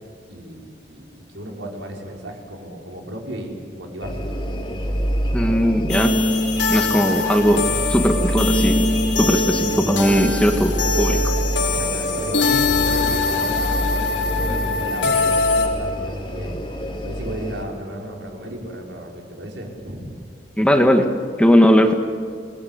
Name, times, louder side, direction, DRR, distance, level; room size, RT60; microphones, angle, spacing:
voice 1, 0.3-4.3 10.0-10.2 11.7-16.6 17.0-20.2, right 1 dB, 80° right, 0 dB, 5.3 m, -34 dB
sound 1, 4.0-17.6, equal, 25° left, 3.8 m, -27 dB
voice 2, 5.3-6.1 6.7-8.8 9.2-10.7 11.0-11.3 20.6-21.1 21.4-21.9, equal, 5° left, 5 dB, 1.8 m, -18 dB
sound 2, 5.9-15.7, left 3 dB, 70° left, 4.8 m, -22 dB
sound 3, 12.5-15.8, equal, 30° right, 7.9 m, -40 dB
29.5 x 20.5 x 8.2 m, 2.3 s
head